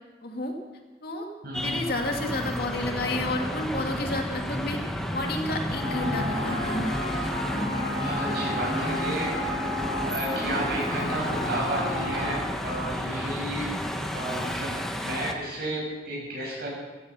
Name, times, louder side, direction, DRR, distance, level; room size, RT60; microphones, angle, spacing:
voice 1, 0.2-0.6 1.0-1.3 1.6-4.8 5.1-6.9, left 2 dB, 60° left, 2 dB, 2.2 m, -30 dB
voice 2, 1.4-1.8 7.9-9.3 9.6-13.8 14.1-14.7 15.0-16.7, right 1 dB, 60° right, -2 dB, 6.9 m, -33 dB
sound 1, 1.5-15.3, equal, 5° left, 1.2 m, -32 dB
sound 2, 5.7-12.4, left 1 dB, 25° left, 5.3 m, -32 dB
15.0 x 14.5 x 5.6 m, 1.2 s
head